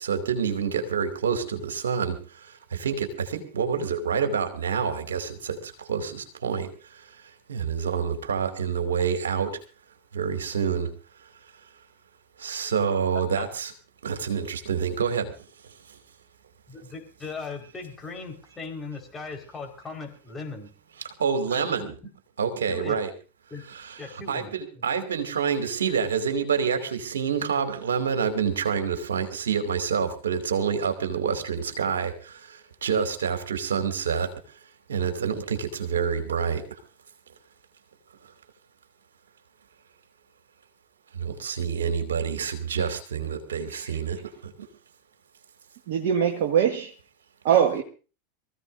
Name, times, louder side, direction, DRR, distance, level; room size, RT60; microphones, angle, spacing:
voice 1, 0.0-2.2 2.4-7.0 7.5-9.6 10.1-10.9 12.4-13.7 14.0-15.3 21.0-21.9 22.4-23.1 23.7-34.3 34.9-36.6 41.1-44.5, right 6 dB, 75° right, 2.5 m, -27 dB
voice 2, 16.7-20.7 21.5-21.9 22.7-23.0 23.5-23.6 24.0-24.8, left 4 dB, 20° left, 4.6 m, -38 dB
voice 3, 45.9-46.9 47.4-47.8, right 8 dB, 55° right, 1.4 m, -22 dB
24.0 x 15.5 x 2.6 m
figure-of-eight pair, 85°, 0 cm